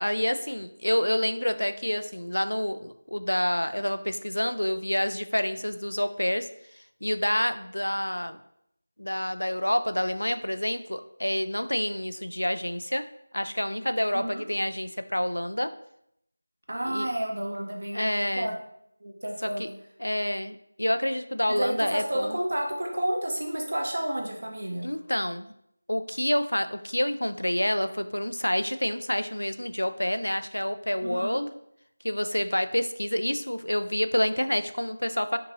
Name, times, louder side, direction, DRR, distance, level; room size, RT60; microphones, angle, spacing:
voice 1, 0.0-8.4 9.0-13.1 13.3-15.7 16.8-17.1 17.9-18.5 19.4-19.7 20.0-22.4 24.8-25.5 25.9-31.5 32.0-35.4, left 1 dB, 90° left, 10 dB, 0.3 m, -28 dB
voice 2, 14.1-14.4 16.7-18.1 18.4-18.5 19.0-19.7 21.6-24.9 31.0-31.4, right 1 dB, 60° right, 1 dB, 0.9 m, -30 dB
5.1 x 2.8 x 2.7 m, 0.74 s
figure-of-eight pair, 170°, 0 cm